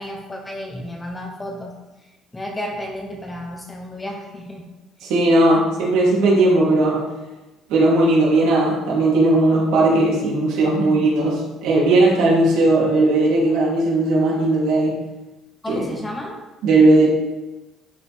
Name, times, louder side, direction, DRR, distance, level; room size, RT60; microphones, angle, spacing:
voice 1, 0.0-1.7 2.3-4.7 15.6-16.4, left 1 dB, 10° left, 1 dB, 0.8 m, -32 dB
voice 2, 5.0-7.1 7.7-15.0 15.7-15.9 16.6-17.1, right 2 dB, 90° right, -5 dB, 2.9 m, -17 dB
12.0 x 4.7 x 3.5 m, 1.1 s
cardioid pair, 165°, 0 cm